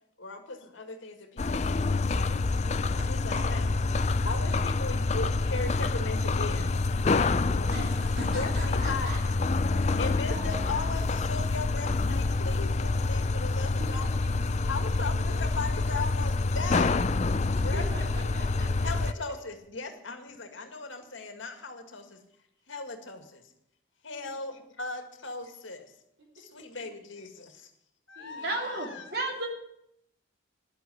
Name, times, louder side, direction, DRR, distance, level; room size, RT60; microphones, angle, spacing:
voice 1, 0.2-2.4 3.1-3.7 4.2-7.9 8.3-9.1 9.8-14.1 14.7-17.0 17.6-17.8 18.2-18.3 18.6-22.2 22.7-23.4 24.0-25.9 26.4-27.7 28.1-29.2, left 3 dB, 75° left, 6 dB, 2.0 m, -38 dB
sound 1, 1.4-19.1, left 3 dB, 35° left, 0.4 m, -27 dB
voice 2, 7.4-9.2 9.6-10.8 13.4-14.3 14.8-15.4 17.5-19.1 24.1-24.3 26.5-26.6 28.2-28.8, right 1 dB, 80° right, -2 dB, 4.0 m, -43 dB
voice 3, 28.4-29.5, right 2 dB, 50° right, 0 dB, 3.0 m, -32 dB
11.0 x 8.2 x 9.9 m, 0.78 s
head